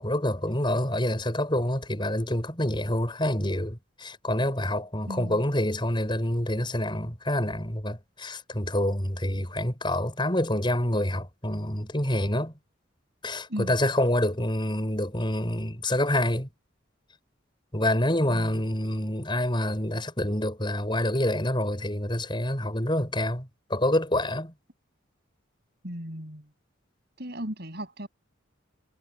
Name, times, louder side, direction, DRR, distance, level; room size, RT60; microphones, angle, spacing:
voice 1, 0.0-12.5 13.2-16.5 17.7-24.5, left 1 dB, 25° left, 7.2 m, -27 dB
voice 2, 5.1-5.4 13.5-13.7 18.3-18.6 25.8-26.5 27.2-28.1, equal, 55° right, 8.0 m, -36 dB
head